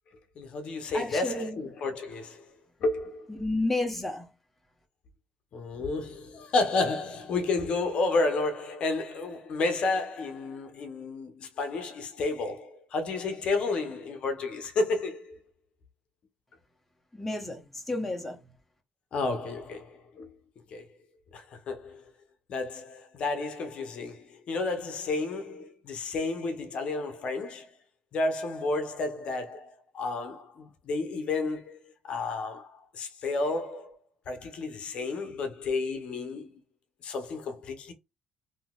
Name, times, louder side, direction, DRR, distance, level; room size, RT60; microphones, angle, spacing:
voice 1, 0.4-2.5 2.8-3.4 5.5-15.4 19.1-20.3 20.7-20.9 21.3-22.0 22.5-27.7 28.1-33.9 34.3-36.6 37.0-37.9, left 3 dB, 50° left, 0.7 m, -31 dB
voice 2, 0.9-1.6 3.3-4.3 17.1-18.4, left 2 dB, 5° left, 0.8 m, -31 dB
3.8 x 2.6 x 2.3 m
cardioid pair, 145°, 2 cm